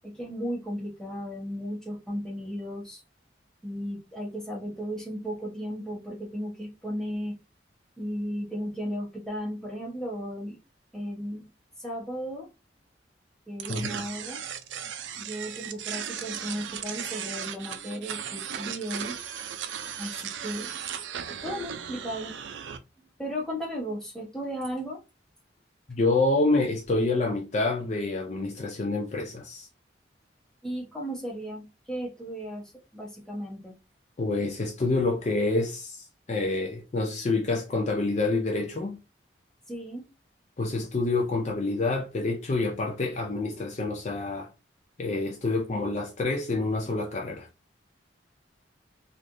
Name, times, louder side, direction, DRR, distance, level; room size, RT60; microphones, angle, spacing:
voice 1, 0.0-3.0 3.6-7.4 8.0-10.6 10.9-11.5 11.8-12.5 13.5-14.4 15.2-19.2 20.0-20.7 21.4-22.3 23.0-25.0 30.6-33.8 39.7-40.1, equal, 5° left, 1.0 m, -35 dB
sound 1, 13.6-22.8, right 8 dB, 85° right, 0.4 m, -36 dB
voice 2, 13.7-14.0 25.9-29.7 34.2-39.0 40.6-44.5 45.0-47.5, left 2 dB, 40° left, 0.4 m, -27 dB
3.2 x 2.4 x 2.6 m
head